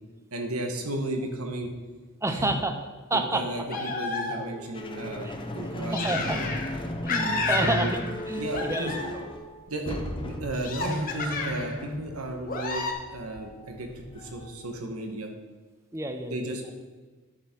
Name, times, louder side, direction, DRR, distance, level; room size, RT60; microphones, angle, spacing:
voice 1, 0.3-1.7 2.3-2.6 3.1-6.5 7.4-7.9 8.4-9.0 9.7-15.3 16.2-16.9, right 1 dB, 90° right, 3 dB, 1.4 m, -34 dB
voice 2, 2.2-2.7 3.1-3.4 5.2-5.4 5.9-6.5 7.0-9.1 15.9-16.5, right 2 dB, 15° right, 6 dB, 0.7 m, -29 dB
sound 1, 3.7-4.7 5.9-6.8 7.1-8.2 8.5-9.3 10.5-11.8 12.4-12.9, left 3 dB, 40° left, 1.3 m, -31 dB
sound 2, 4.7-14.8, left 1 dB, 25° left, 0.7 m, -36 dB
10.5 x 7.0 x 4.6 m, 1.3 s
head